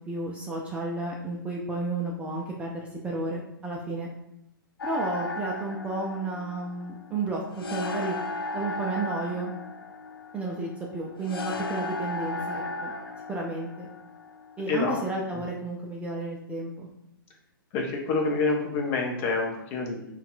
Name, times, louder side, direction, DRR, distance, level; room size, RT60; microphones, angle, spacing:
voice 1, 0.1-4.1 4.8-8.2 8.5-9.5 10.3-12.9 13.3-13.9 14.6-16.9, right 2 dB, 10° right, -2 dB, 0.3 m, -32 dB
sound 1, 4.8-14.8, left 2 dB, 75° left, 0.4 m, -35 dB
voice 2, 14.7-15.0 17.7-20.1, left 3 dB, 35° left, 1 dB, 0.7 m, -27 dB
4.0 x 2.3 x 2.5 m, 0.80 s
figure-of-eight pair, 120°, 12 cm